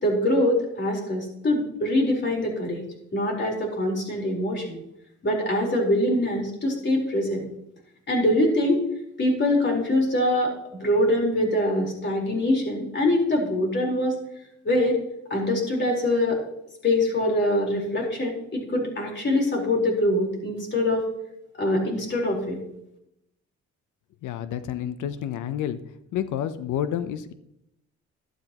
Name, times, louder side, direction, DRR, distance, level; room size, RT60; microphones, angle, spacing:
voice 1, 0.0-2.8 3.1-4.8 5.2-7.4 8.1-8.8 9.2-10.5 10.8-14.2 14.6-15.0 15.3-16.4 16.8-21.0 21.6-22.6, left 1 dB, 35° left, 0 dB, 4.1 m, -23 dB
voice 2, 24.2-25.8 26.1-27.3, left 10 dB, 80° left, 12 dB, 0.8 m, -29 dB
12.0 x 12.0 x 3.0 m, 0.80 s
cardioid pair, 90°, 30 cm